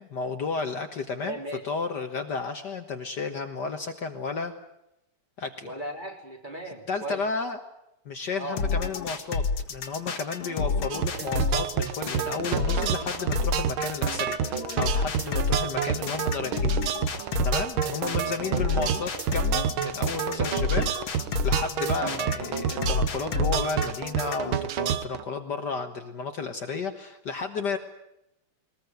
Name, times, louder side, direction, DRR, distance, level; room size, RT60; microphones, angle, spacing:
voice 1, 0.0-1.4 1.6-4.5 5.4-5.7 6.9-7.6 8.1-9.4 9.7-16.8 17.4-20.9 21.4-27.8, left 4 dB, 55° left, 6 dB, 1.9 m, -32 dB
voice 2, 1.2-1.6 5.6-7.2 8.4-8.6 15.7-16.0 17.8-18.8 20.4-20.6, right 1 dB, 20° right, 1 dB, 3.9 m, -38 dB
sound 1, 8.6-24.6, left 4 dB, 70° left, 2.6 m, -29 dB
sound 2, 10.9-25.2, right 9 dB, 70° right, 1.9 m, -29 dB
21.5 x 21.0 x 9.3 m, 0.83 s
omnidirectional pair, 2.4 m